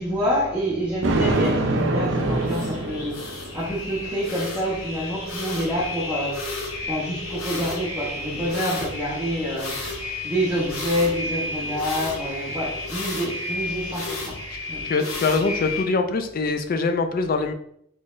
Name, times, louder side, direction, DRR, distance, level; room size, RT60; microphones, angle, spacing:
voice 1, 0.0-6.5 6.8-14.4 14.7-14.8, equal, 10° right, 0.8 m, -27 dB
sound 1, 1.0-15.9, left 2 dB, 85° left, 0.8 m, -33 dB
Thunder, 1.0-3.6, right 2 dB, 60° right, 0.5 m, -24 dB
voice 2, 14.8-17.5, left 3 dB, 45° left, 0.4 m, -23 dB
3.9 x 3.1 x 2.5 m
head